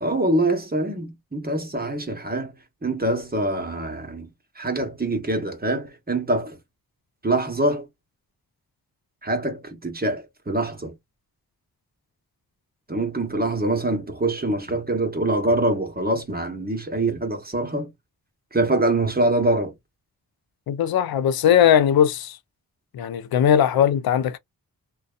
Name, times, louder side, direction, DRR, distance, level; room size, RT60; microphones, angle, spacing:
voice 1, 0.0-2.5 2.8-4.3 4.6-6.6 7.2-7.9 9.2-10.9 12.9-17.9 18.5-19.7, right 2 dB, 25° right, 1.0 m, -24 dB
voice 2, 20.7-22.4 22.9-24.4, left 9 dB, 75° left, 0.5 m, -19 dB
2.6 x 2.3 x 2.4 m
cardioid pair, 45°, 37 cm